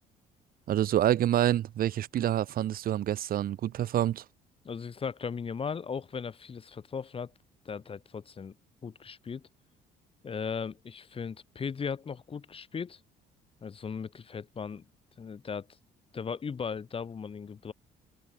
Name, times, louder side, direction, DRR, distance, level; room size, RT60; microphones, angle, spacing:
voice 1, 0.7-4.2, right 12 dB, 60° right, 1.9 m, -27 dB
voice 2, 4.6-7.3 7.6-8.5 8.8-9.4 10.2-13.0 13.6-14.8 15.2-15.7 16.1-17.7, left 6 dB, 35° left, 3.1 m, -37 dB
cardioid pair, 110°, 17 cm